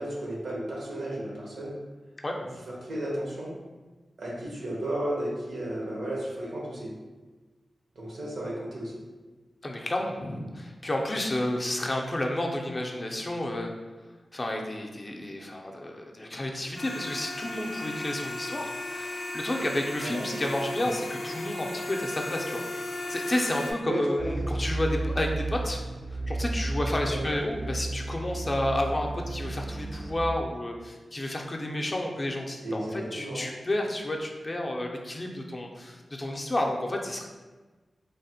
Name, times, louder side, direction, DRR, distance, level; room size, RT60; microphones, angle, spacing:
voice 1, 0.0-1.8 2.8-3.5 4.2-6.9 8.0-8.9 20.0-20.2 23.8-24.5 27.1-27.2 32.6-33.5, right 1 dB, 85° right, -4 dB, 0.8 m, -33 dB
voice 2, 9.6-13.7 14.3-22.6 23.1-25.8 26.1-37.3, left 1 dB, 35° left, 1 dB, 0.4 m, -31 dB
sound 1, 16.8-23.7, left 2 dB, 90° left, 0.4 m, -36 dB
sound 2, 24.2-30.2, right 2 dB, 35° right, 0.4 m, -33 dB
3.2 x 2.1 x 2.7 m, 1.3 s
cardioid pair, 65°, 0 cm